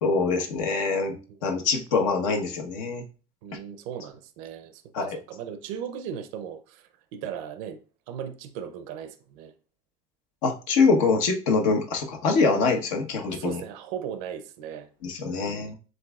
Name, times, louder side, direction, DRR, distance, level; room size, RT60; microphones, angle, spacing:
voice 1, 0.0-3.0 4.9-5.2 10.4-13.6 15.0-15.7, left 4 dB, 85° left, 1.1 m, -24 dB
voice 2, 1.3-1.7 3.4-7.8 8.1-9.5 13.3-14.9 15.3-15.7, right 8 dB, 85° right, 0.5 m, -37 dB
7.5 x 2.7 x 2.3 m
supercardioid pair, 120°, 16 cm